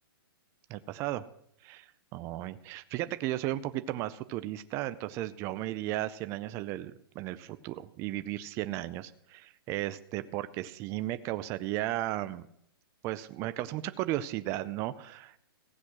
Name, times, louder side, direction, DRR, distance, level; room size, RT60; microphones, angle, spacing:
voice 1, 0.7-1.2 1.6-1.9 2.1-12.4 13.0-15.4, right 15 dB, 20° right, 12 dB, 0.5 m, -35 dB
16.0 x 8.1 x 6.0 m, 0.73 s
hypercardioid pair, 155°, 12 cm